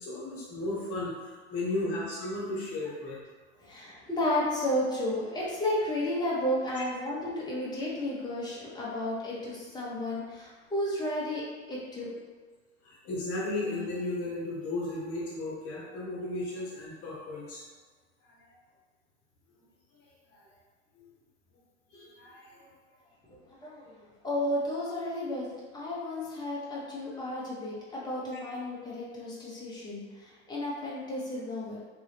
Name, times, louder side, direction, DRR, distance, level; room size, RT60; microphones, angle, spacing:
voice 1, 0.0-3.2 12.8-17.6 18.5-18.6 21.0-21.1 21.9-22.7, left 2 dB, 40° left, -5 dB, 1.1 m, -35 dB
voice 2, 3.6-12.1 23.3-24.0 24.2-25.5 25.7-31.8, left 1 dB, 10° left, -6 dB, 1.1 m, -33 dB
3.2 x 2.6 x 3.3 m, 1.4 s
hypercardioid pair, 105°, 35 cm